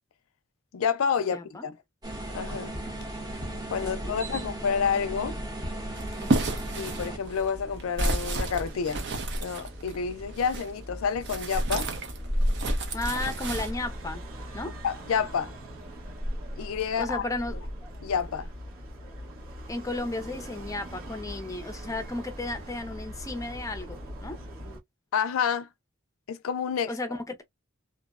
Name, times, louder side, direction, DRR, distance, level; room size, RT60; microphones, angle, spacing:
voice 1, 0.7-1.8 2.3-2.7 3.7-5.4 6.8-9.0 9.4-11.9 14.8-15.5 16.6-17.3 18.0-18.5 25.1-25.7 26.3-26.9, left 6 dB, 90° left, 0.4 m, -29 dB
voice 2, 1.3-1.7 3.8-4.5 6.2-6.5 12.9-14.2 14.5-14.8 17.0-17.6 19.7-24.4 26.9-27.4, left 2 dB, 15° left, 0.5 m, -34 dB
sound 1, 2.0-7.2, right 1 dB, 20° right, 0.7 m, -36 dB
sound 2, 5.9-10.7 11.2-13.7, right 2 dB, 60° right, 0.6 m, -31 dB
sound 3, 6.3-24.8, equal, 85° right, 1.0 m, -37 dB
2.6 x 2.1 x 2.3 m
head